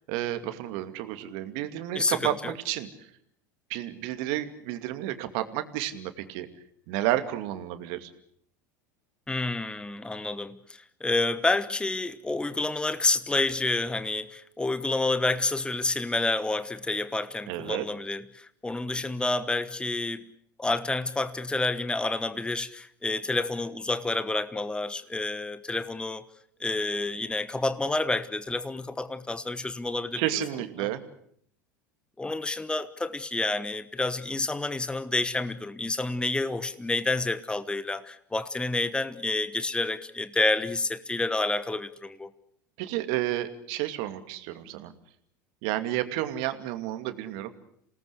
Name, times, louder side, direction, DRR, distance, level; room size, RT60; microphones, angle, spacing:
voice 1, 0.1-2.9 3.7-6.5 6.9-8.1 17.5-17.8 30.2-31.0 42.8-44.9 45.6-47.5, right 13 dB, 60° right, 2.5 m, -31 dB
voice 2, 1.9-2.5 9.3-20.3 20.6-26.2 26.6-30.2 30.8-30.9 32.2-42.3, left 2 dB, 10° left, 1.2 m, -29 dB
27.5 x 19.0 x 8.1 m
hypercardioid pair, 85°, 10 cm